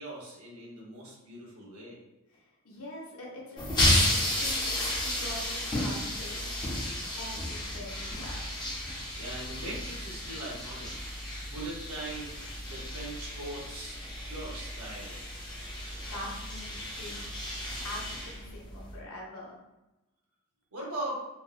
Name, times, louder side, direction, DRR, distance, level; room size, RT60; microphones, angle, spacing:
voice 1, 0.0-2.0 9.1-10.9 11.4-12.4 12.6-14.0 14.2-15.2 20.7-21.2, right 1 dB, 90° right, -4 dB, 0.8 m, -40 dB
voice 2, 2.3-3.7 4.0-6.5 7.1-8.6 15.6-17.4 17.8-19.6, left 1 dB, 75° left, -3 dB, 0.6 m, -44 dB
sound 1, 3.6-19.0, left 1 dB, 20° left, 0.4 m, -33 dB
2.5 x 2.0 x 2.4 m, 0.99 s
head